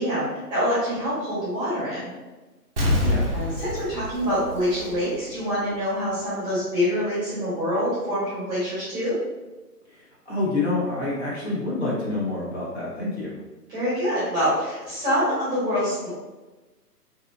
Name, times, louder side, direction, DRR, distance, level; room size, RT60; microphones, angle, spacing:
voice 1, 0.0-2.1 3.3-9.2 13.7-16.1, equal, 10° right, -12 dB, 1.0 m, -25 dB
Explosion, 2.8-5.4 5.7-5.8, left 1 dB, 40° right, 0.4 m, -26 dB
voice 2, 9.9-13.4, left 2 dB, 40° left, -6 dB, 0.9 m, -27 dB
2.8 x 2.3 x 2.4 m, 1.1 s
hypercardioid pair, 150°, 49 cm